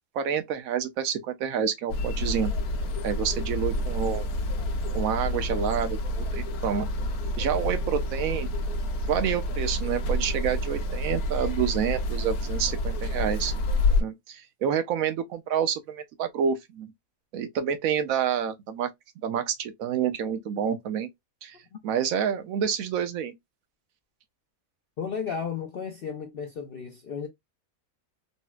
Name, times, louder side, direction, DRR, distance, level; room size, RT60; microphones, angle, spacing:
voice 1, 0.1-2.5 3.0-4.3 4.9-6.9 7.4-8.5 9.1-13.5 14.0-16.9 17.3-18.9 19.2-21.1 21.4-21.6 21.8-23.3, right 8 dB, 75° right, 1.0 m, -28 dB
sound 1, 1.9-14.0, left 1 dB, 80° left, 1.1 m, -28 dB
voice 2, 25.0-27.3, left 6 dB, 60° left, 0.6 m, -34 dB
4.0 x 2.0 x 2.2 m
omnidirectional pair, 1.5 m